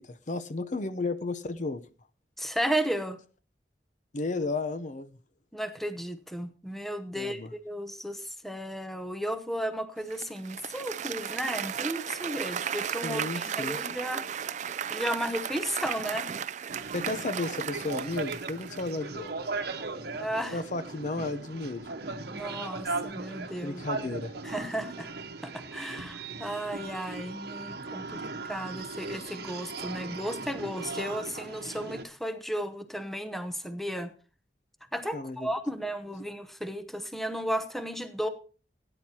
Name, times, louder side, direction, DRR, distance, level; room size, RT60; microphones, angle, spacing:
voice 1, 0.0-1.8 4.1-5.1 7.1-7.5 13.0-13.8 16.9-19.4 20.5-21.9 23.6-24.3 28.1-28.2 35.1-35.5, left 3 dB, 45° left, 12 dB, 0.7 m, -33 dB
voice 2, 2.4-3.2 5.5-14.3 14.9-16.3 20.2-20.6 22.3-23.8 24.4-25.1 25.4-34.1 34.9-38.3, equal, ahead, 8 dB, 0.8 m, -34 dB
Applause, 10.1-19.0, right 8 dB, 45° right, 0.4 m, -35 dB
sound 1, 16.7-32.0, right 3 dB, 65° right, 1.1 m, -38 dB
18.0 x 9.9 x 2.8 m, 0.37 s
head